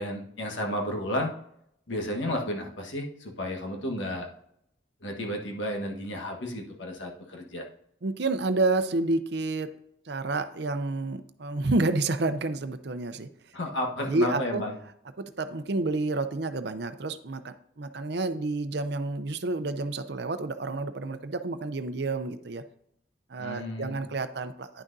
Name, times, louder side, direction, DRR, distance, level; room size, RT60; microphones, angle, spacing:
voice 1, 0.0-1.3 1.9-4.3 5.0-7.6 13.5-14.7 23.4-24.0, left 1 dB, 70° left, 1 dB, 1.5 m, -32 dB
voice 2, 8.0-9.7 10.1-13.5 14.0-14.6 15.2-22.6 23.3-24.8, right 2 dB, 55° right, 10 dB, 0.6 m, -29 dB
10.0 x 6.2 x 2.7 m, 0.72 s
head